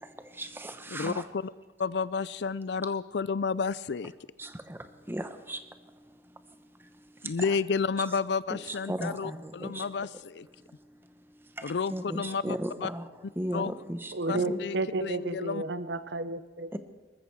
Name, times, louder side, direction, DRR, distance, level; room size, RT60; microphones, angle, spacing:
voice 1, 0.0-1.2 4.4-5.6 7.2-7.3 8.5-9.8 11.6-13.1 13.4-14.6 16.7-16.8, right 1 dB, 15° right, 9 dB, 0.9 m, -36 dB
voice 2, 0.9-1.5 1.8-4.1 7.2-10.5 11.6-12.9 13.5-13.7 14.3-15.6, left 5 dB, 70° left, 19 dB, 0.4 m, -31 dB
voice 3, 14.1-16.7, right 2 dB, 80° right, 13 dB, 0.9 m, -32 dB
20.5 x 14.0 x 4.7 m, 1.3 s
head